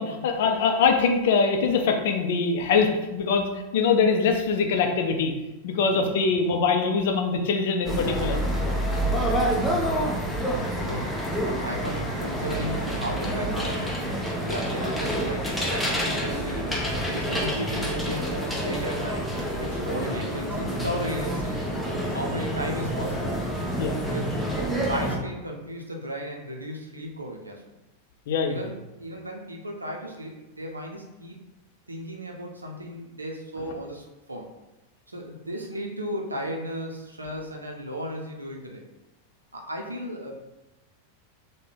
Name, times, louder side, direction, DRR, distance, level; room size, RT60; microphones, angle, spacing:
voice 1, 0.0-5.3 5.6-8.4 23.8-23.9 28.3-28.7, left 5 dB, 55° left, 4 dB, 0.5 m, -23 dB
voice 2, 5.8-6.3 9.0-9.7 10.7-19.2 19.6-21.7 22.1-23.3 24.0-27.7 28.5-31.4 31.9-34.5 35.1-38.8 39.5-40.4, equal, 80° right, 1 dB, 0.5 m, -35 dB
sound 1, 7.8-25.2, right 1 dB, 5° left, 0.7 m, -28 dB
3.3 x 2.2 x 3.6 m, 1.0 s
figure-of-eight pair, 90°, 0 cm